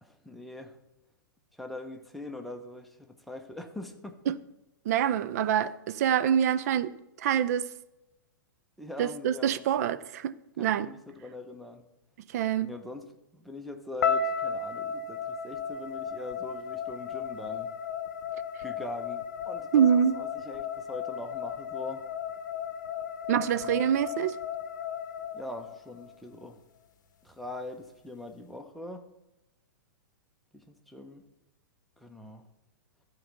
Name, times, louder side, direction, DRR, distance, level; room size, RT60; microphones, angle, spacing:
voice 1, 0.0-0.8 1.6-4.4 8.8-9.9 10.6-11.8 12.6-17.7 18.6-22.0 23.5-23.9 25.3-26.6 27.2-29.1 30.5-31.2 32.0-32.5, left 1 dB, ahead, 0.9 m, -42 dB
voice 2, 4.9-7.7 9.0-10.9 12.3-12.7 19.7-20.2 23.3-24.4, right 9 dB, 50° right, 0.5 m, -26 dB
sound 1, 14.0-26.2, left 6 dB, 60° left, 0.8 m, -34 dB
14.0 x 4.7 x 5.4 m
figure-of-eight pair, 105°, 11 cm